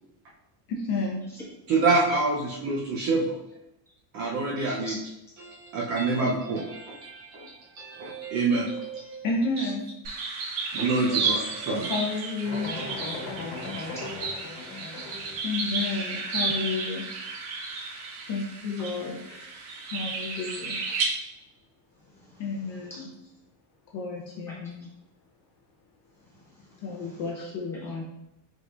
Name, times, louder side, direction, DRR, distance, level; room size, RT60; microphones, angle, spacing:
voice 1, 0.7-1.2 9.2-9.9 11.8-12.8 15.4-17.1 18.3-19.2 19.9-20.8 22.4-23.1 23.9-24.8 26.8-28.0, left 3 dB, 45° left, -1 dB, 0.6 m, -31 dB
voice 2, 1.7-3.4 4.1-4.9 5.4-9.2 9.6-9.7 10.7-11.9 13.6-13.8, right 3 dB, 35° right, -3 dB, 0.5 m, -27 dB
voice 3, 4.6-4.9 11.2-11.3 14.7-15.4 15.9-16.3 16.8-16.9 19.3-19.5 20.5-20.6 22.1-23.0 26.2-27.2 27.7-27.8, left 1 dB, 5° left, -8 dB, 1.2 m, -48 dB
sound 1, 10.0-21.0, right 4 dB, 75° right, 1.3 m, -33 dB
sound 2, 12.4-15.3, left 3 dB, 65° left, 1.3 m, -37 dB
4.8 x 3.9 x 2.3 m, 0.89 s
cardioid pair, 170°, 50 cm